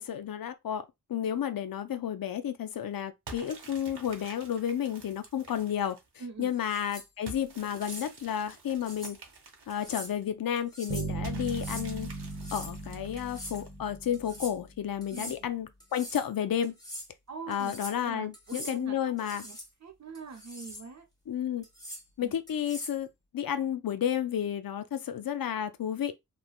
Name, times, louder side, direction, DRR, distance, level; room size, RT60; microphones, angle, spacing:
voice 1, 0.0-6.0 6.4-9.2 9.7-12.1 12.5-16.7 17.5-19.4 21.3-21.7 22.2-23.1 23.3-26.1, left 9 dB, 60° left, 0.5 m, -32 dB
sound 1, 3.3-6.2 7.3-10.2 11.2-13.9, right 3 dB, 75° right, 0.9 m, -49 dB
voice 2, 6.2-6.5 15.1-15.3 17.3-17.7 18.0-21.0 22.2-22.4, right 4 dB, 40° right, 0.7 m, -44 dB
sound 2, 6.5-7.1 7.7-8.1 8.9-9.2 9.7-10.1 10.6-11.1 11.5-11.9 12.3-12.8 13.2-13.6 14.1-14.5 15.0-15.4 15.8-16.3 16.6-17.1 17.5-18.0 18.3-18.8 19.2-19.7 20.1-20.9 21.6-22.0 22.5-23.0, equal, 10° left, 1.0 m, -43 dB
sound 3, 10.9-14.9, right 3 dB, 20° right, 1.1 m, -38 dB
3.1 x 2.2 x 2.3 m
wide cardioid pair, 75°, 40 cm